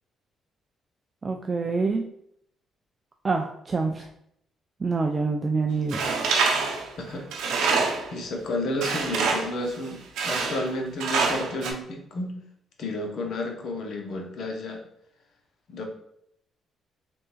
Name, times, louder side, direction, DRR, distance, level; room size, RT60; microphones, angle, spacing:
voice 1, 1.2-2.1 3.2-4.1 4.8-6.1, right 4 dB, 30° right, 3 dB, 0.3 m, -26 dB
Tools, 5.9-8.2 8.8-9.6 10.2-10.7 11.0-11.7, right 4 dB, 85° right, 0.6 m, -26 dB
voice 2, 7.8-12.3 12.8-14.8 15.7-15.8, left 1 dB, 65° left, 1 dB, 0.9 m, -31 dB
3.5 x 3.1 x 3.0 m, 0.74 s
cardioid pair, 90°, 0 cm